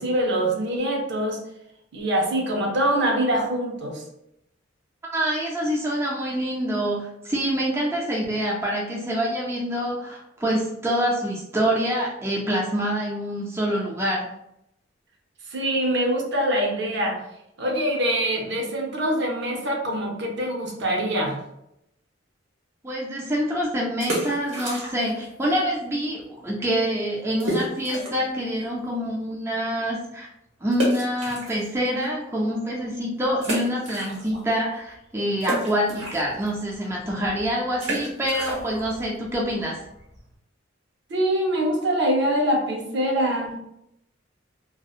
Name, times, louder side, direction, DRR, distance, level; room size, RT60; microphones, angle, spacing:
voice 1, 0.0-1.4 1.9-4.0 15.5-17.2 17.6-21.4 41.1-43.6, right 1 dB, 60° right, 0 dB, 0.6 m, -24 dB
voice 2, 5.1-14.2 22.8-30.3 30.6-39.8, equal, 15° right, -4 dB, 0.4 m, -26 dB
sound 1, 23.9-25.2 25.5-25.6 26.2-26.3 26.6-26.7 27.4-28.3 28.8-28.9 30.7-32.1 32.6-32.7 33.4-34.6 34.8-40.3, right 1 dB, 75° right, 1.1 m, -31 dB
2.7 x 2.0 x 2.3 m, 0.81 s
head